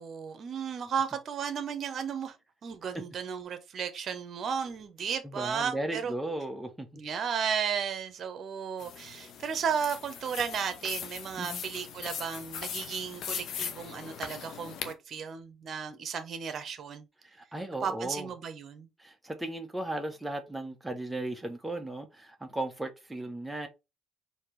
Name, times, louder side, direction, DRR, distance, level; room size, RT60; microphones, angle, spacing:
voice 1, 0.0-2.3 2.6-6.1 6.9-17.1 17.8-18.9, right 7 dB, 50° right, 0.9 m, -34 dB
voice 2, 5.2-7.0 11.4-11.6 17.2-18.3 19.0-23.7, right 1 dB, 5° right, 0.7 m, -36 dB
sound 1, 8.8-14.9, left 8 dB, 60° left, 0.7 m, -40 dB
4.3 x 2.8 x 3.2 m
cardioid pair, 100°, 0 cm